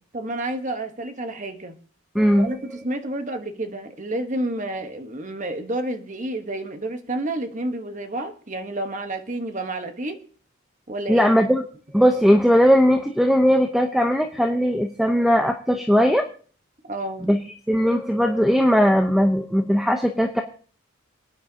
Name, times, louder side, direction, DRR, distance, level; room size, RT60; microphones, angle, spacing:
voice 1, 0.1-1.8 2.4-10.2 10.9-11.3 16.9-17.3, right 1 dB, 35° right, 7 dB, 1.1 m, -30 dB
voice 2, 2.1-2.5 11.1-11.6 11.9-16.2 17.2-17.4 17.7-20.4, equal, ahead, 4 dB, 0.7 m, -18 dB
28.0 x 9.6 x 2.8 m, 0.43 s
head